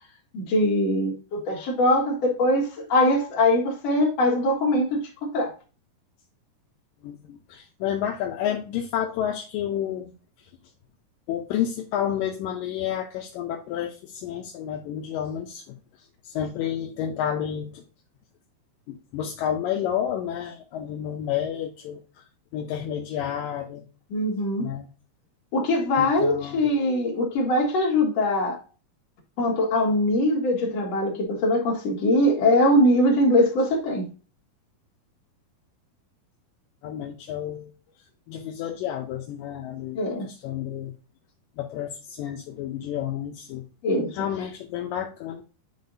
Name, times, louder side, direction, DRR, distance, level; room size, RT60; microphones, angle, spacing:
voice 1, 0.3-5.0 5.3-5.5 24.1-24.7 25.5-28.6 29.4-34.0 39.9-40.3 43.8-44.1, left 1 dB, 50° left, 2.5 m, -22 dB
voice 2, 7.0-10.1 10.4-10.5 11.3-15.8 16.2-17.8 18.9-22.2 22.5-23.9 24.6-24.9 26.0-26.6 36.8-37.7 38.3-40.9 41.6-43.6 44.1-45.4, left 10 dB, 80° left, 2.0 m, -30 dB
9.5 x 4.5 x 2.7 m
omnidirectional pair, 4.8 m